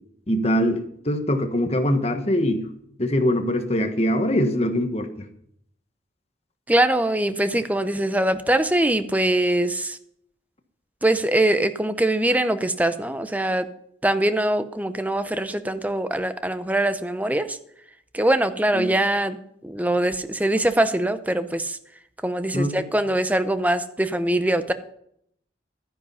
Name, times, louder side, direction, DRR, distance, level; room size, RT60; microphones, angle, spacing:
voice 1, 0.3-2.6 3.0-5.1 18.7-18.9 22.5-22.8, equal, 35° left, 6 dB, 1.3 m, -22 dB
voice 2, 6.7-10.0 11.0-13.7 14.0-17.6 18.1-19.4 19.6-21.8 22.2-24.7, right 1 dB, 10° right, 11 dB, 0.6 m, -22 dB
12.5 x 9.9 x 5.6 m, 0.70 s
head